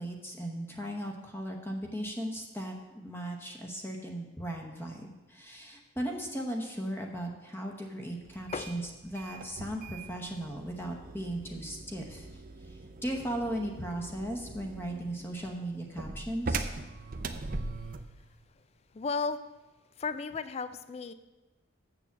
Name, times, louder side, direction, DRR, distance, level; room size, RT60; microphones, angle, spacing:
voice 1, 0.0-16.7, right 1 dB, 10° left, 2 dB, 0.9 m, -37 dB
sound 1, 8.3-18.2, right 3 dB, 40° right, 0.5 m, -41 dB
voice 2, 8.5-9.0 9.4-9.5 17.8-18.6 18.9-19.4 19.9-21.1, left 4 dB, 30° left, 13 dB, 0.3 m, -36 dB
7.2 x 6.9 x 7.1 m, 1.1 s
head